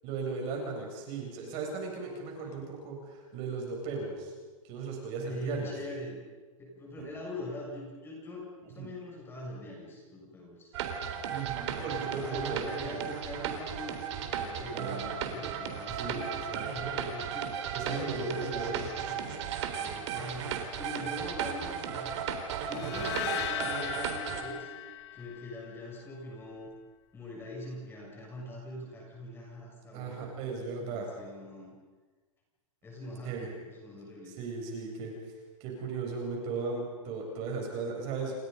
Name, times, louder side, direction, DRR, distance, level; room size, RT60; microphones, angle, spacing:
voice 1, 0.0-4.3 4.6-5.7 7.0-7.1 8.7-8.9 11.2-13.0 14.7-15.0 16.0-17.0 17.7-18.7 22.8-23.1 29.9-31.1 33.2-33.5 34.2-35.1 35.6-38.3, right 4 dB, 35° right, 0 dB, 7.6 m, -37 dB
voice 2, 2.4-2.7 5.3-6.2 6.6-10.8 11.7-16.3 16.7-17.5 17.8-20.5 20.8-22.1 22.7-24.7 25.1-26.7 27.1-30.6 30.9-31.8 32.8-34.3, left 1 dB, 15° left, -2 dB, 7.4 m, -42 dB
sound 1, 10.7-24.4, right 7 dB, 55° right, 3.9 m, -35 dB
sound 2, 22.7-25.9, left 14 dB, 50° left, 1.8 m, -38 dB
29.5 x 25.5 x 5.6 m, 1.3 s
hypercardioid pair, 155°, 18 cm